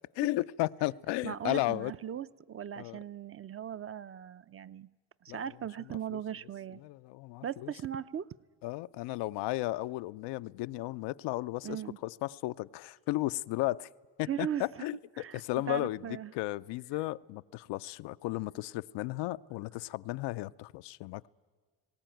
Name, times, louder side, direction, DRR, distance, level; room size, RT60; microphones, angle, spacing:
voice 1, 0.2-1.9 2.8-3.0 5.3-5.4 6.1-6.2 6.8-7.7 8.6-13.9 14.2-16.0 16.3-21.3, left 18 dB, 85° left, 14 dB, 0.5 m, -34 dB
voice 2, 1.2-4.9 5.2-6.8 7.4-8.3 11.6-12.0 14.3-14.9 15.2-16.3, right 9 dB, 35° right, 16 dB, 0.5 m, -38 dB
20.0 x 18.0 x 9.1 m, 1.5 s
supercardioid pair, 75°, 41 cm